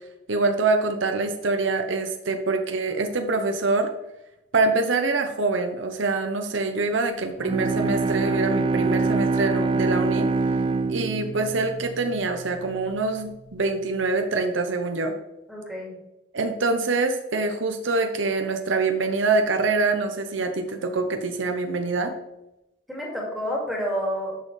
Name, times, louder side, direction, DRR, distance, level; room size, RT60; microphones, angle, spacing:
voice 1, 0.3-3.9 4.5-10.3 10.9-15.1 16.3-22.1, right 3 dB, 90° right, 5 dB, 0.8 m, -25 dB
Bowed string instrument, 7.4-12.5, right 3 dB, 25° right, 0.3 m, -25 dB
voice 2, 15.5-16.0 22.9-24.4, equal, ahead, -3 dB, 2.1 m, -29 dB
10.5 x 6.4 x 3.2 m, 0.93 s
head